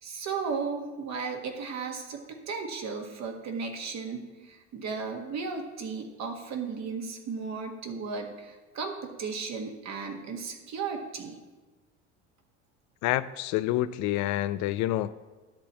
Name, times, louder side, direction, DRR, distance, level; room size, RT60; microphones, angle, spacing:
voice 1, 0.0-11.4, right 5 dB, 50° right, 3 dB, 1.7 m, -35 dB
voice 2, 13.0-15.2, left 14 dB, 55° left, 15 dB, 0.4 m, -28 dB
10.5 x 4.1 x 7.2 m, 1.2 s
hypercardioid pair, 75°, 36 cm